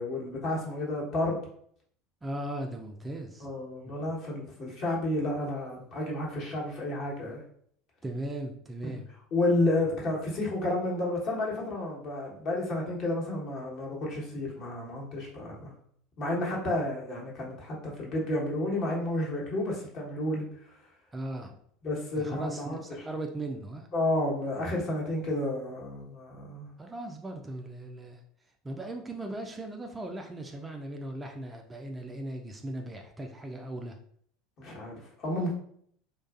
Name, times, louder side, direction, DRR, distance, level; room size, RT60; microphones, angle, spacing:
voice 1, 0.0-1.4 3.4-7.4 8.8-8.9 9.3-15.7 16.2-20.7 21.8-22.8 23.9-26.7 34.6-35.5, left 1 dB, 50° left, -3 dB, 1.1 m, -31 dB
voice 2, 2.2-3.5 3.9-4.1 8.0-9.1 21.1-21.6 22.2-23.9 26.8-28.2 28.6-34.0, right 1 dB, 15° right, 3 dB, 0.3 m, -38 dB
2.5 x 2.3 x 2.4 m, 0.63 s
hypercardioid pair, 75°, 0 cm